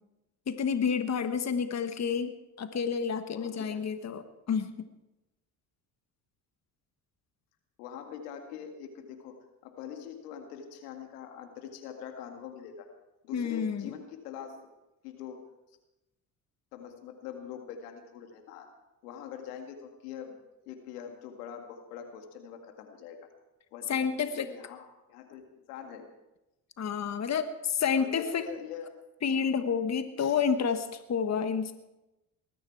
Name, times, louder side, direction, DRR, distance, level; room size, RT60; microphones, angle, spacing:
voice 1, 0.5-4.7 13.3-13.9 23.9-24.5 26.8-28.4 29.2-31.7, left 6 dB, 35° left, 9 dB, 1.3 m, -29 dB
voice 2, 3.3-3.8 7.8-9.4 9.6-12.9 13.2-14.7 15.0-15.4 16.7-18.7 19.0-20.4 20.7-23.2 23.7-25.4 25.7-26.1 27.9-28.9 30.2-30.4, left 8 dB, 85° left, 5 dB, 2.0 m, -43 dB
20.0 x 13.5 x 4.7 m, 0.97 s
hypercardioid pair, 60°, 46 cm